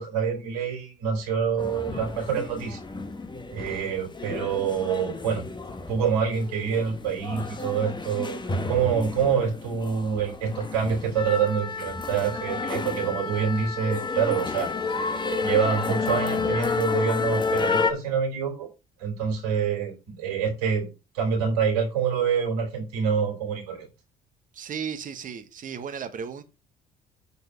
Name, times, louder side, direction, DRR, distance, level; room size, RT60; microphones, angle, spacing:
voice 1, 0.0-2.8 3.5-5.4 5.9-8.4 8.7-14.7 15.3-18.7 19.0-20.9 21.1-23.9, right 6 dB, 85° right, 3.9 m, -26 dB
sound 1, 1.6-17.9, left 4 dB, 25° left, 1.5 m, -30 dB
voice 2, 24.5-26.4, right 7 dB, 45° right, 1.4 m, -35 dB
8.5 x 4.3 x 5.7 m
hypercardioid pair, 60°, 19 cm